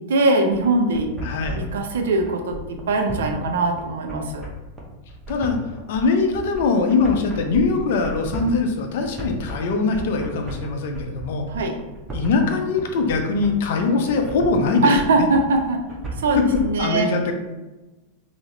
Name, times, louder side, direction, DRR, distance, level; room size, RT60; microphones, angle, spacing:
voice 1, 0.1-1.1 1.6-4.5 11.5-11.8 14.8-15.8 16.2-17.1, right 2 dB, 60° right, 4 dB, 0.4 m, -21 dB
sound 1, 0.5-16.6, right 1 dB, 15° right, 0.7 m, -35 dB
voice 2, 1.2-1.6 5.3-5.6 5.9-11.5 12.1-14.9 15.2-15.3 16.3-16.4 16.8-17.3, left 4 dB, 55° left, 4 dB, 0.4 m, -22 dB
3.4 x 2.0 x 3.2 m, 1.1 s
figure-of-eight pair, 90°, 0 cm